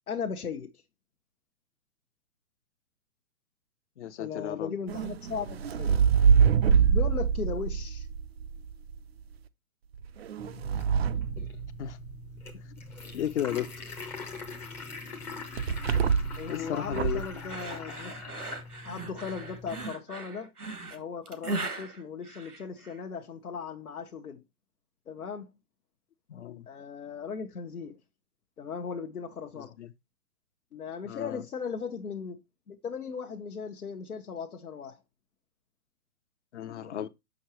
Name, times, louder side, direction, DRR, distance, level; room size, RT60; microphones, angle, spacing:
voice 1, 0.1-0.7 4.2-6.0 6.9-8.1 16.4-18.1 18.8-20.5 20.9-24.4 25.1-25.5 26.7-28.0 28.6-29.8 30.7-32.4 32.7-35.0, left 6 dB, 75° left, 1.0 m, -37 dB
voice 2, 4.0-4.7 11.8-12.0 12.7-12.8 13.1-13.7 16.5-17.2 26.3-26.7 29.6-29.9 31.0-31.4 36.5-37.1, left 10 dB, 50° left, 0.7 m, -34 dB
sound 1, 4.9-9.0 9.9-12.3 15.6-16.5 16.8-17.3, right 7 dB, 45° right, 0.5 m, -25 dB
sound 2, 10.4-19.9, left 3 dB, 5° left, 0.5 m, -43 dB
sound 3, 17.5-23.0, right 2 dB, 80° right, 1.6 m, -38 dB
6.3 x 5.9 x 3.0 m
figure-of-eight pair, 125°, 44 cm